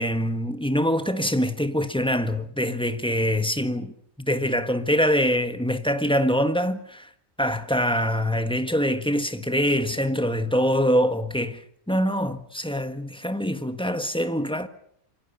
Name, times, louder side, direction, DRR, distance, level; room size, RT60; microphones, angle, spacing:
voice 1, 0.0-3.9 4.2-7.1 7.4-11.6 11.9-14.7, equal, 5° left, 1.4 m, -24 dB
28.0 x 23.5 x 5.6 m
omnidirectional pair, 1.5 m